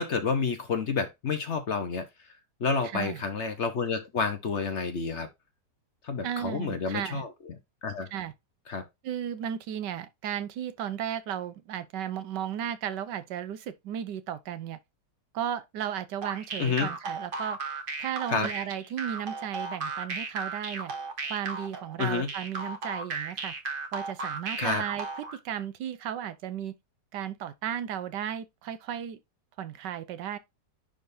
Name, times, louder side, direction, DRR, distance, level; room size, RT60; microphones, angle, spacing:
voice 1, 0.0-2.0 2.6-5.3 6.0-7.3 7.8-8.1 8.7-8.8 16.6-16.9 18.3-18.5 22.0-22.3 24.6-24.8, left 5 dB, 50° left, 1.0 m, -29 dB
voice 2, 2.8-3.2 6.2-7.2 8.1-8.3 9.0-14.8 15.3-17.6 18.0-20.9 21.3-23.5 23.9-26.7 27.1-29.2 29.6-30.4, right 10 dB, 80° right, 1.4 m, -34 dB
sound 1, 16.2-25.4, right 4 dB, 40° right, 0.9 m, -35 dB
10.5 x 3.5 x 2.6 m
omnidirectional pair, 1.9 m